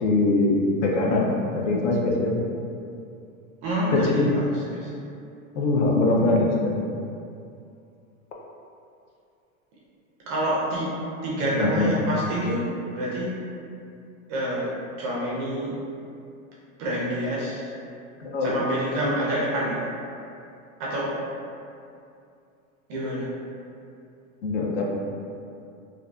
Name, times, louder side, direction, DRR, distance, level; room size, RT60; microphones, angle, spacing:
voice 1, 0.0-2.4 3.9-4.3 5.6-6.8 11.5-12.0 18.2-18.6 24.4-24.9, left 2 dB, 60° left, -2 dB, 0.5 m, -22 dB
voice 2, 3.6-4.9 10.3-10.9 11.2-13.3 14.3-14.7 15.0-15.7 16.8-17.7 18.4-19.8 20.8-21.2 22.9-23.3, right 1 dB, 30° right, -6 dB, 0.4 m, -27 dB
2.5 x 2.3 x 2.2 m, 2.5 s
supercardioid pair, 150°, 40 cm